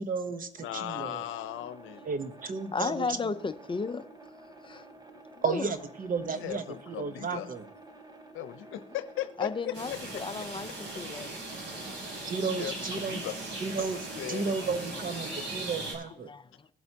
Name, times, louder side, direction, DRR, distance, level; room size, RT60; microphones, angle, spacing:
voice 1, 0.0-1.2 2.0-3.3 5.4-7.7 12.3-13.2 13.6-16.3, right 5 dB, 45° right, 10 dB, 1.0 m, -33 dB
voice 2, 0.6-2.1 6.4-7.5 8.3-10.2 12.5-13.3 14.1-14.5, left 13 dB, 90° left, 11 dB, 0.7 m, -37 dB
sound 1, 0.6-15.5, right 2 dB, 20° right, 1.4 m, -51 dB
voice 3, 2.7-4.0 4.6-4.9 5.5-5.6 9.4-11.4 15.3-15.4 16.3-16.7, left 4 dB, 25° left, 10 dB, 0.6 m, -34 dB
sound 2, 9.7-15.9, right 2 dB, 70° right, 3.7 m, -39 dB
19.5 x 7.8 x 2.9 m, 0.71 s
cardioid pair, 90°, 20 cm